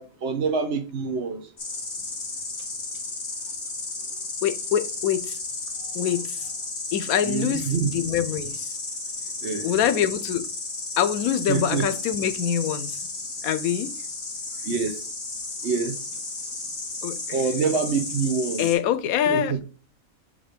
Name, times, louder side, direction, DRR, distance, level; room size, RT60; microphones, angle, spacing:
voice 1, 0.0-1.4 7.3-7.9 9.4-9.7 11.5-11.8 14.6-14.9 15.6-16.0 17.3-18.7 19.3-19.6, right 5 dB, 55° right, 1.1 m, -26 dB
Insect, 1.6-18.7, left 3 dB, 60° left, 2.6 m, -33 dB
voice 2, 4.4-5.4 5.9-6.4 6.9-8.8 9.6-10.5 11.0-13.1 13.4-13.9 17.0-17.4 18.6-19.6, left 9 dB, 85° left, 1.1 m, -25 dB
7.1 x 2.8 x 5.1 m
omnidirectional pair, 1.5 m